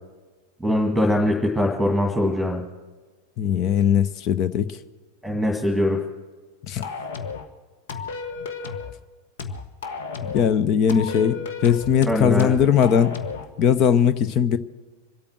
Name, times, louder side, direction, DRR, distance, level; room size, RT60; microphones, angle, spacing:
voice 1, 0.6-2.6 5.2-6.0 12.1-12.5, left 1 dB, ahead, 1.9 m, -22 dB
voice 2, 3.4-4.8 6.7-6.8 10.3-13.2 13.6-14.6, left 8 dB, 35° left, 0.8 m, -19 dB
sound 1, 6.8-7.5 7.9-8.9 9.4-10.5 10.9-13.5, left 5 dB, 55° left, 1.3 m, -33 dB
25.0 x 8.7 x 6.2 m
figure-of-eight pair, 90°, 0 cm